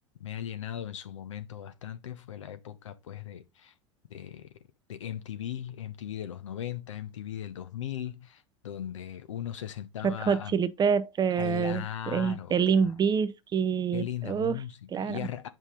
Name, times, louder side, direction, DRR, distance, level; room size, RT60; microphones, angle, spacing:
voice 1, 0.2-3.7 4.1-4.5 4.9-10.6 11.4-12.9 13.9-15.5, left 10 dB, 75° left, 1.0 m, -38 dB
voice 2, 10.0-14.6 14.9-15.3, right 6 dB, 25° right, 0.6 m, -27 dB
7.1 x 5.4 x 3.8 m
hypercardioid pair, 80°, 16 cm